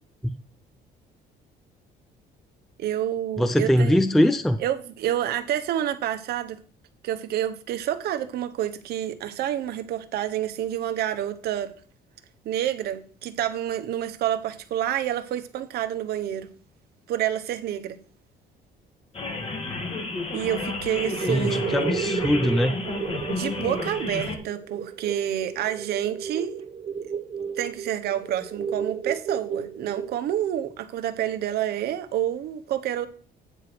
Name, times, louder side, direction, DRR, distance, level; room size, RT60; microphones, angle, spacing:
voice 1, 2.8-4.0 4.6-6.6 7.0-11.7 12.4-16.5 17.1-18.0 20.3-22.1 23.3-26.6 27.6-33.1, right 11 dB, 70° right, 1.0 m, -28 dB
voice 2, 3.4-4.6 21.3-22.7, left 1 dB, ahead, 0.4 m, -22 dB
sound 1, 19.1-24.4, left 3 dB, 35° left, 1.7 m, -31 dB
sound 2, 20.9-30.2, right 7 dB, 35° right, 0.8 m, -33 dB
9.0 x 4.7 x 6.0 m
cardioid pair, 145°, 17 cm